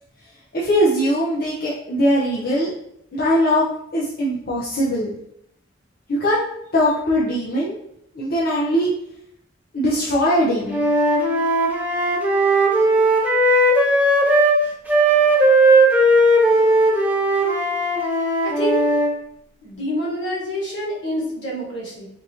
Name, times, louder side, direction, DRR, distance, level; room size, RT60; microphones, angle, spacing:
voice 1, 0.5-2.7 3.1-5.1 6.1-6.4 6.7-7.8 8.1-8.9 9.7-10.9, equal, 50° left, -6 dB, 0.6 m, -20 dB
Wind instrument woodwind instrument, 10.7-14.6 14.9-19.1, right 1 dB, 10° right, 0.5 m, -17 dB
voice 2, 18.4-18.8 19.6-22.1, equal, 70° left, -6 dB, 1.4 m, -27 dB
3.7 x 2.8 x 2.8 m, 0.75 s
head